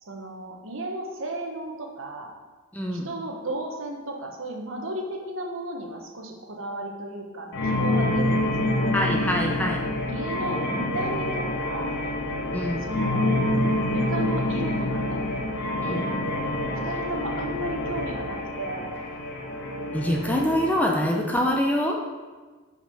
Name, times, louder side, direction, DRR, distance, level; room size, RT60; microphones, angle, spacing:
voice 1, 0.0-2.3 2.9-9.1 10.0-12.0 12.8-13.4 13.9-15.3 16.8-18.9, right 1 dB, 65° right, 1 dB, 1.1 m, -34 dB
voice 2, 2.7-3.1 8.9-9.8 12.5-12.9 15.8-16.1 19.9-22.0, equal, 5° left, 0 dB, 0.6 m, -25 dB
sound 1, 7.5-20.8, left 1 dB, 55° left, 0.8 m, -27 dB
5.9 x 5.4 x 5.5 m, 1.4 s
head